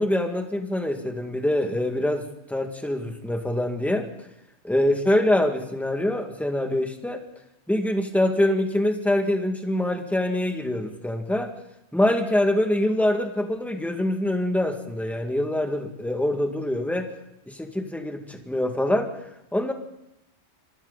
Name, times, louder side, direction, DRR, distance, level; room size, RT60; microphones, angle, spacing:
voice 1, 0.0-4.1 4.6-7.2 7.7-11.5 11.9-17.1 17.5-19.1 19.5-19.7, left 1 dB, ahead, 4 dB, 2.1 m, -24 dB
25.5 x 25.5 x 4.1 m, 0.88 s
omnidirectional pair, 1.2 m